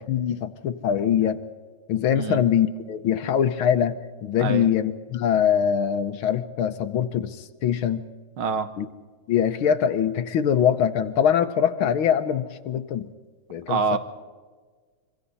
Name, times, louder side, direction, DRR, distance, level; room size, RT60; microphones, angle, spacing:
voice 1, 0.0-1.4 1.9-8.0 8.8-8.9 9.3-13.1 13.5-14.0, left 9 dB, 80° left, 10 dB, 1.7 m, -23 dB
voice 2, 4.4-4.7 8.4-8.7 13.7-14.0, right 4 dB, 75° right, 10 dB, 2.1 m, -25 dB
26.5 x 24.0 x 4.2 m, 1.5 s
omnidirectional pair, 2.3 m